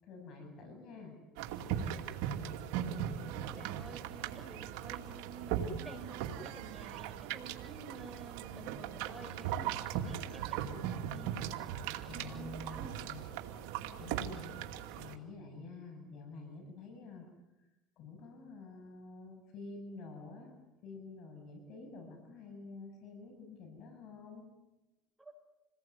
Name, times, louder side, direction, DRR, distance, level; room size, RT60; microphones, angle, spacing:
voice 1, 0.0-1.2 12.1-13.2 14.0-14.6 14.9-17.3 18.0-20.5 20.8-24.4, left 3 dB, 55° left, 4 dB, 7.7 m, -49 dB
sound 1, 1.4-15.1, right 9 dB, 80° right, 2.5 m, -39 dB
voice 2, 3.2-11.4 12.0-13.0 25.2-25.3, right 4 dB, 10° right, 5 dB, 5.7 m, -50 dB
28.0 x 20.5 x 9.6 m, 0.99 s
supercardioid pair, 110°, 0 cm